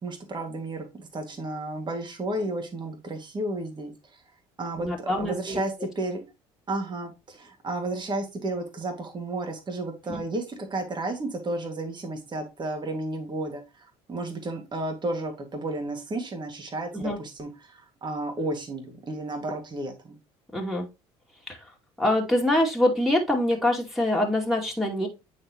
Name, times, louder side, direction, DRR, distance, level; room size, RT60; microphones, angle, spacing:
voice 1, 0.0-4.2 4.6-6.2 6.7-20.2, right 2 dB, 35° right, 4 dB, 2.1 m, -32 dB
voice 2, 4.7-5.6 10.1-10.2 16.9-17.2 20.5-20.9 21.5-21.6 22.0-25.1, left 1 dB, ahead, 2 dB, 2.4 m, -25 dB
8.7 x 4.2 x 3.0 m, 0.26 s
hypercardioid pair, 70°, 14 cm